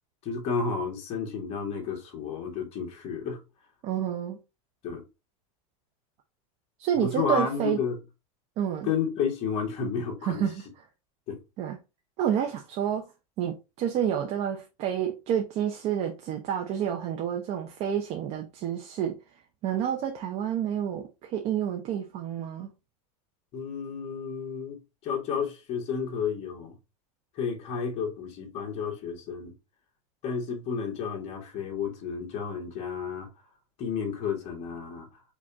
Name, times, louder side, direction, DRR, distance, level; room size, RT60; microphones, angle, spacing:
voice 1, 0.2-3.4 4.8-5.0 7.0-8.0 8.8-10.4 11.3-11.4 23.5-26.8 27.4-29.5 30.2-33.3 33.8-35.1, left 6 dB, 40° left, 1.8 m, -31 dB
voice 2, 3.8-4.4 6.8-7.8 8.6-8.9 10.3-10.6 11.6-11.8 12.2-13.1 13.4-19.1 19.6-22.7, right 9 dB, 40° right, 0.8 m, -29 dB
5.2 x 2.6 x 3.5 m
supercardioid pair, 145°, 17 cm